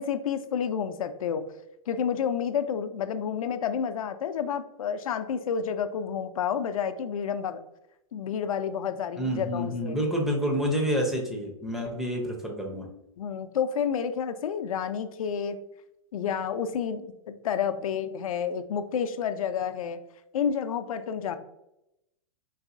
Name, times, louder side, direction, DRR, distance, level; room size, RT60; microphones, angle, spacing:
voice 1, 0.0-1.4 1.9-7.6 8.1-10.0 13.2-15.6 16.1-20.0 20.3-21.4, left 7 dB, 85° left, 10 dB, 0.4 m, -30 dB
voice 2, 9.2-12.9, equal, ahead, 1 dB, 0.6 m, -28 dB
3.9 x 2.6 x 2.5 m, 0.84 s
hypercardioid pair, 125°, 18 cm